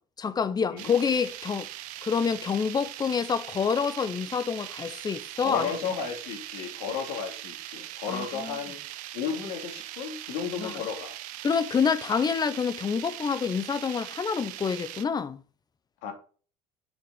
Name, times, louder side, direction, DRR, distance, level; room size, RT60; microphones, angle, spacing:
voice 1, 0.2-1.7 2.0-5.7 8.1-8.6 10.6-10.7 11.4-15.4, left 6 dB, 25° left, 0.9 m, -27 dB
sound 1, 0.8-15.0, right 14 dB, 70° right, 0.8 m, -41 dB
voice 2, 5.4-8.8 9.1-11.2 16.0-16.1, left 6 dB, 75° left, 2.7 m, -33 dB
7.1 x 6.7 x 3.9 m
supercardioid pair, 95°, 15 cm